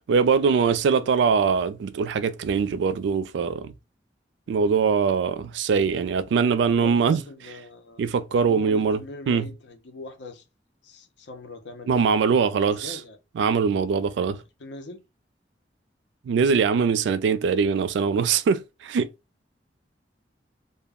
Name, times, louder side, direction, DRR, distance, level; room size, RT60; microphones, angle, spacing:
voice 1, 0.1-3.7 4.5-7.2 8.0-9.0 9.3-9.5 11.9-13.0 13.4-14.4 16.3-19.1, right 5 dB, 80° right, 0.3 m, -22 dB
voice 2, 4.5-4.8 6.8-8.0 8.3-10.4 10.8-13.2 14.6-15.0, left 2 dB, 75° left, 0.6 m, -42 dB
2.2 x 2.0 x 3.4 m
head